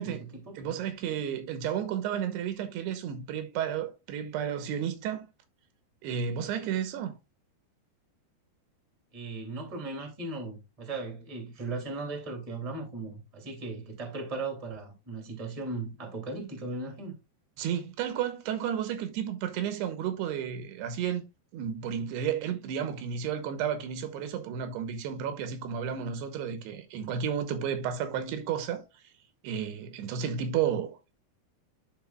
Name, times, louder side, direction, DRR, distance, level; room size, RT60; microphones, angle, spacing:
voice 1, 0.0-0.6 9.1-17.1, right 3 dB, 15° right, 1.5 m, -37 dB
voice 2, 0.6-5.3 6.0-7.2 17.6-21.2 21.5-28.9 29.4-31.2, right 8 dB, 80° right, 3.0 m, -32 dB
11.5 x 4.7 x 2.3 m
omnidirectional pair, 4.7 m